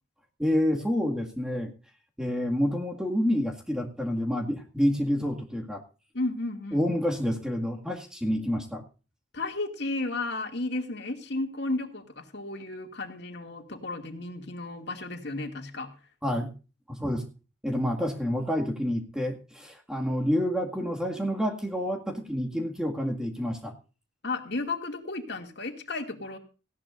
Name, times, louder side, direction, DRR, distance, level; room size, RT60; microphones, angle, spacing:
voice 1, 0.4-1.7 2.2-5.8 6.7-8.8 16.2-16.5 16.9-17.2 17.6-23.7, equal, 5° right, 1 dB, 2.0 m, -28 dB
voice 2, 6.1-6.9 9.3-15.9 24.2-26.4, left 2 dB, 60° left, 4 dB, 2.4 m, -33 dB
18.5 x 16.0 x 2.6 m, 0.34 s
head